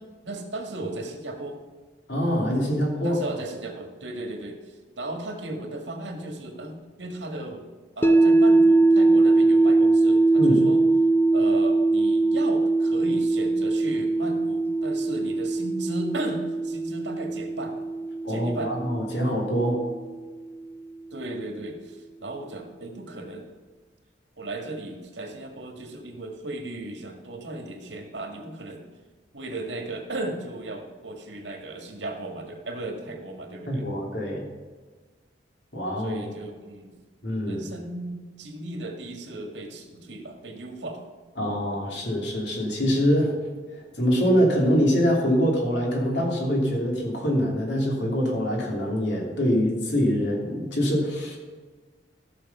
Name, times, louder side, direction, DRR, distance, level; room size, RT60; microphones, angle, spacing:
voice 1, 0.0-1.6 3.0-4.6 5.0-7.6 8.0-10.8 11.3-17.7 18.3-18.7 21.1-23.5 24.4-28.9 29.3-33.9 36.0-36.9 37.5-41.0, right 2 dB, 85° right, 3 dB, 1.9 m, -36 dB
voice 2, 2.1-3.2 10.4-10.7 18.2-19.8 33.7-34.4 35.7-36.2 37.2-37.6 41.4-43.3 43.9-51.4, equal, 75° left, -1 dB, 2.9 m, -24 dB
sound 1, 8.0-20.1, right 2 dB, 10° left, 0.6 m, -21 dB
14.0 x 6.6 x 5.6 m, 1.4 s
head